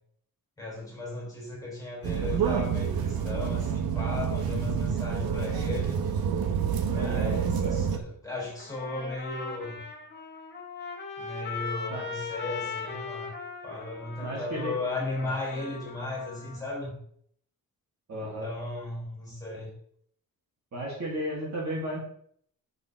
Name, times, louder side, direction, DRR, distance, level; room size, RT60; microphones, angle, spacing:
voice 1, 0.6-6.0 6.9-9.8 11.2-13.3 13.6-17.0 18.2-19.7, left 2 dB, 10° left, -4 dB, 4.2 m, -36 dB
sound 1, 2.0-8.0, right 7 dB, 85° right, 1.2 m, -28 dB
voice 2, 6.9-7.7 11.9-12.1 14.2-14.9 15.2-15.3 18.1-18.5 20.7-22.0, right 1 dB, 50° right, -3 dB, 3.1 m, -34 dB
Trumpet, 8.6-16.6, left 5 dB, 30° left, 1.5 m, -39 dB
10.0 x 6.9 x 3.6 m, 0.63 s
wide cardioid pair, 165°, 35 cm